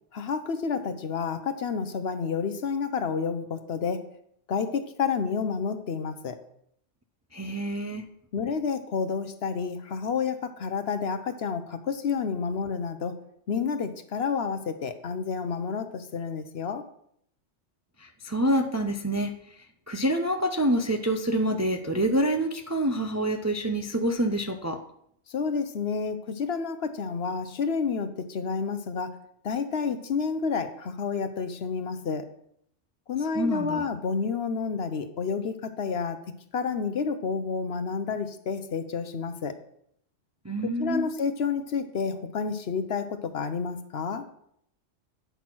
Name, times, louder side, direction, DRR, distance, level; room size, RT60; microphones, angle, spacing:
voice 1, 0.1-4.0 4.5-6.4 8.3-13.1 13.5-16.8 25.3-29.2 29.4-32.3 33.1-36.2 36.5-39.5 40.8-44.3, left 5 dB, 60° left, 9 dB, 1.0 m, -30 dB
voice 2, 7.3-8.0 18.0-19.4 19.9-24.8 33.3-33.8 40.4-41.1, right 1 dB, 20° right, 5 dB, 0.5 m, -27 dB
9.3 x 5.9 x 6.0 m, 0.70 s
omnidirectional pair, 1.2 m